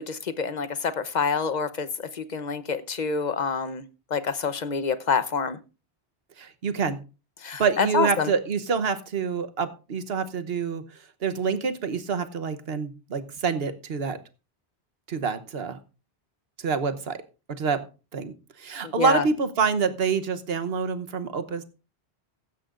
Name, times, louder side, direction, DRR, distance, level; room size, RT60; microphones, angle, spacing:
voice 1, 0.0-3.8 4.1-5.6 7.4-8.3 18.8-19.2, left 5 dB, 45° left, 12 dB, 1.0 m, -27 dB
voice 2, 6.4-7.0 7.6-10.8 11.2-14.2 15.1-15.8 16.6-17.2 17.5-17.8 18.1-21.6, right 5 dB, 65° right, 10 dB, 1.2 m, -27 dB
15.5 x 13.0 x 2.5 m, 0.32 s
omnidirectional pair, 1.1 m